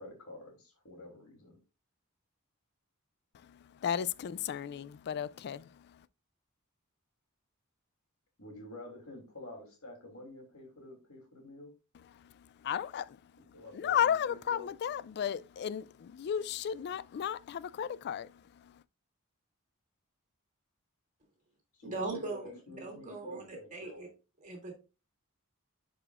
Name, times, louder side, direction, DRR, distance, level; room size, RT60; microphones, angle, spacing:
voice 1, 0.0-1.6 8.4-11.7 13.5-14.7 21.8-24.1, left 1 dB, 70° left, 2.9 m, -49 dB
voice 2, 3.4-6.0 12.1-13.2 13.7-18.7, left 9 dB, 50° left, 0.3 m, -34 dB
voice 3, 21.8-24.1 24.4-24.7, right 3 dB, 35° right, 2.6 m, -40 dB
11.0 x 5.0 x 2.4 m
head